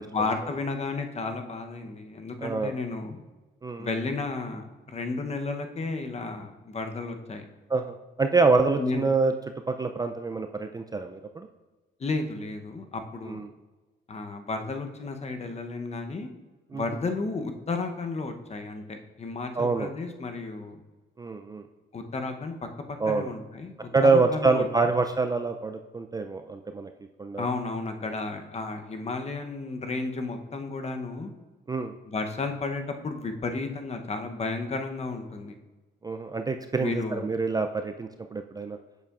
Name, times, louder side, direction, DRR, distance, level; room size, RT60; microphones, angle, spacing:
voice 1, 0.0-3.2 3.8-7.4 8.8-9.1 12.0-13.4 14.1-16.3 16.7-20.8 21.9-22.5 22.9-24.6 27.4-31.3 32.1-35.5 36.8-37.3, left 3 dB, 35° left, 6 dB, 0.8 m, -33 dB
voice 2, 2.4-2.7 3.6-3.9 7.7-9.3 9.7-11.5 13.3-13.5 16.7-16.8 19.6-19.9 21.2-21.6 23.0-23.3 23.9-26.9 27.2-27.5 31.7-31.9 36.0-38.8, right 4 dB, 20° right, 6 dB, 0.3 m, -26 dB
8.2 x 6.7 x 2.4 m, 1.2 s
cardioid pair, 90°, 20 cm